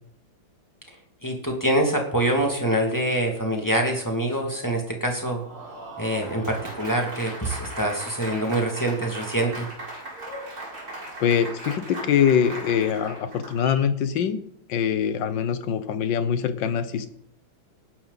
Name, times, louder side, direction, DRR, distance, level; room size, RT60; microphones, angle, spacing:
voice 1, 1.2-5.4 6.0-9.7, right 1 dB, 10° left, 1 dB, 2.2 m, -25 dB
Applause, 5.2-13.9, right 1 dB, 45° right, 5.1 m, -38 dB
voice 2, 11.2-14.4 14.7-17.1, left 8 dB, 65° left, 12 dB, 1.6 m, -23 dB
19.0 x 11.5 x 4.1 m, 0.71 s
omnidirectional pair, 2.3 m